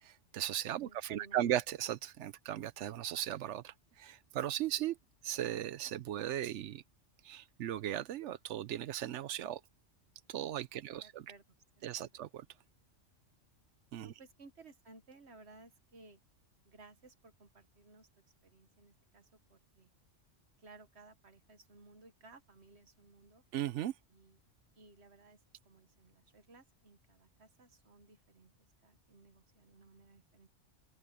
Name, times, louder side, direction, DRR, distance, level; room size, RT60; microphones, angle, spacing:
voice 1, 0.0-5.0 5.2-6.8 7.2-9.6 10.3-11.3 11.8-12.3 13.9-14.1 23.5-23.9, right 11 dB, 75° right, 0.9 m, -37 dB
voice 2, 0.8-1.5 10.7-11.4 11.8-12.1 14.0-16.2 16.6-18.1 18.4-19.9 20.6-23.4 24.1-24.4 24.8-25.4 25.6-28.5 28.8-30.5, right 3 dB, 60° right, 1.8 m, -59 dB
open air
omnidirectional pair, 1.3 m